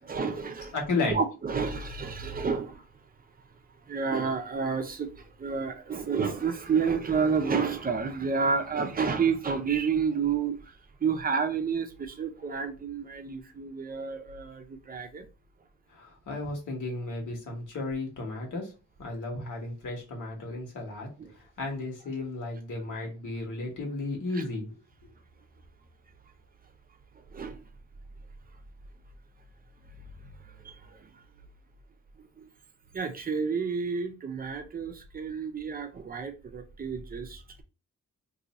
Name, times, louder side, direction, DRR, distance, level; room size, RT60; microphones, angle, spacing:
voice 1, 0.0-0.7 1.1-3.0 3.8-15.3 21.2-21.4 24.3-24.4 27.1-27.7 30.2-31.2 32.2-32.5 32.9-37.6, right 5 dB, 30° right, 0.5 m, -30 dB
voice 2, 0.7-1.2 15.9-18.7 19.0-21.1 21.4-24.8, left 3 dB, 75° left, 1.4 m, -34 dB
2.7 x 2.6 x 4.0 m
wide cardioid pair, 170°, 30 cm